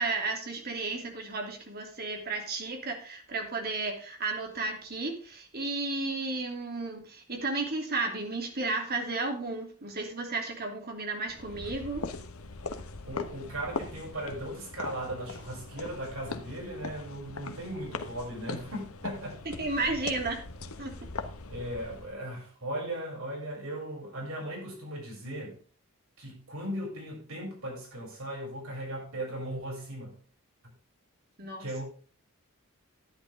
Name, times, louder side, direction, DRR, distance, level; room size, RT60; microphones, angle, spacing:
voice 1, 0.0-12.0 19.4-20.4 20.8-20.9 31.4-31.6, right 3 dB, 45° right, 3.1 m, -33 dB
sound 1, 11.3-22.2, left 3 dB, 75° left, 1.2 m, -41 dB
voice 2, 13.0-19.4 19.7-19.8 21.5-25.6 26.2-30.2 31.6-31.8, right 1 dB, 70° right, 7.3 m, -37 dB
11.5 x 10.5 x 3.7 m
head